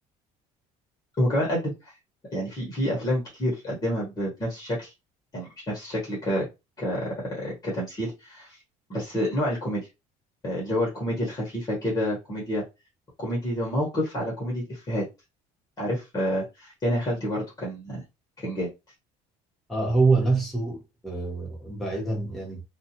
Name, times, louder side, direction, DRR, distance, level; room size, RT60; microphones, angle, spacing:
voice 1, 1.2-1.9 2.3-4.9 5.3-6.5 6.8-8.6 8.9-9.9 10.4-12.6 13.2-15.1 15.8-18.0 18.4-18.7, equal, 25° left, 1.1 m, -28 dB
voice 2, 19.7-22.6, right 3 dB, ahead, 1.1 m, -25 dB
2.5 x 2.3 x 2.8 m
cardioid pair, 150°, 15 cm